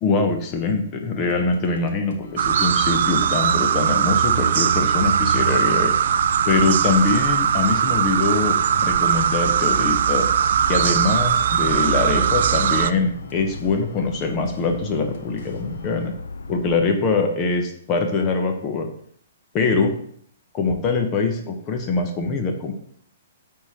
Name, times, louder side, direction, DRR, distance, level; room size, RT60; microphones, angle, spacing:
voice 1, 0.0-6.0 6.5-10.3 10.7-16.1 16.5-18.9 19.5-20.0 20.5-22.7, left 4 dB, 30° left, 4 dB, 1.1 m, -23 dB
sound 1, 1.3-16.1, left 2 dB, 60° left, 1.1 m, -46 dB
sound 2, 2.4-12.9, right 8 dB, 60° right, 0.4 m, -20 dB
sound 3, 4.8-16.9, left 3 dB, 80° left, 0.6 m, -37 dB
9.2 x 3.8 x 4.3 m, 0.64 s
hypercardioid pair, 125°, 0 cm